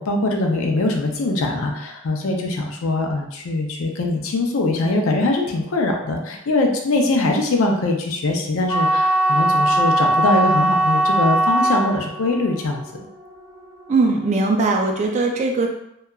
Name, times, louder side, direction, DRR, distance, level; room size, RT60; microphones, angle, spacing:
voice 1, 0.0-13.1, left 2 dB, 80° left, 2 dB, 0.4 m, -22 dB
sound 1, 8.7-14.8, right 1 dB, 75° right, 0.7 m, -20 dB
voice 2, 13.9-15.7, right 3 dB, 35° right, 2 dB, 0.3 m, -19 dB
2.8 x 2.3 x 2.3 m, 0.79 s
head